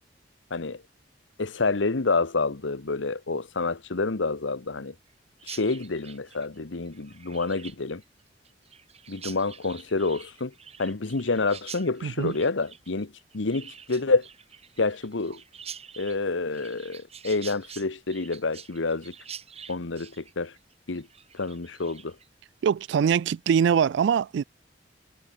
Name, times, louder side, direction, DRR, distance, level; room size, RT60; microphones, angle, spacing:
voice 1, 0.5-0.8 1.4-4.9 5.4-8.0 9.1-10.5 10.8-14.3 14.8-15.4 16.0-19.1 19.7-20.6 20.9-21.1 21.3-22.2, left 3 dB, 80° left, 1.1 m, -28 dB
Chirp tweet, 5.4-22.3, right 8 dB, 35° right, 4.1 m, -46 dB
voice 2, 12.0-12.3 22.6-24.4, right 7 dB, 65° right, 0.3 m, -23 dB
head